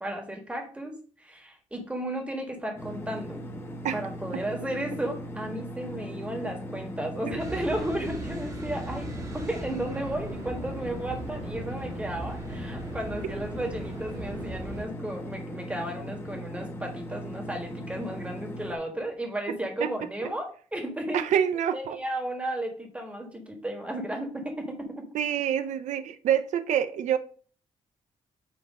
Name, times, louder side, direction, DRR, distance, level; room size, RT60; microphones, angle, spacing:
voice 1, 0.0-3.4 3.9-21.3 21.7-25.0, right 1 dB, 10° right, 1.4 m, -34 dB
sound 1, 2.8-18.8, equal, 20° left, 1.0 m, -39 dB
sound 2, 7.4-14.8, right 1 dB, 30° right, 1.3 m, -39 dB
voice 2, 21.1-22.0 25.1-27.2, right 9 dB, 80° right, 0.4 m, -26 dB
7.6 x 2.9 x 5.1 m
cardioid pair, 130°, 12 cm